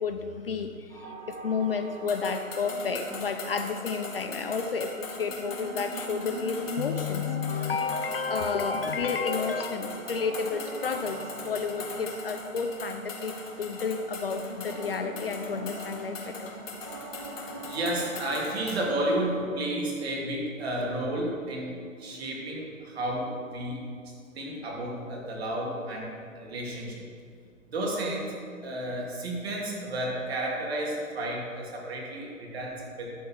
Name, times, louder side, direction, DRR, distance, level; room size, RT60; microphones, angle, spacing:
voice 1, 0.0-16.5, left 5 dB, 45° left, 7 dB, 0.5 m, -31 dB
sound 1, 0.9-19.5, right 2 dB, 15° right, 0.5 m, -43 dB
sound 2, 2.1-18.9, left 3 dB, 60° left, 2.2 m, -41 dB
voice 2, 17.6-27.0 27.7-28.3 28.6-33.1, right 1 dB, 45° right, -2 dB, 2.5 m, -32 dB
12.0 x 4.3 x 7.2 m, 2.3 s
hypercardioid pair, 160°, 41 cm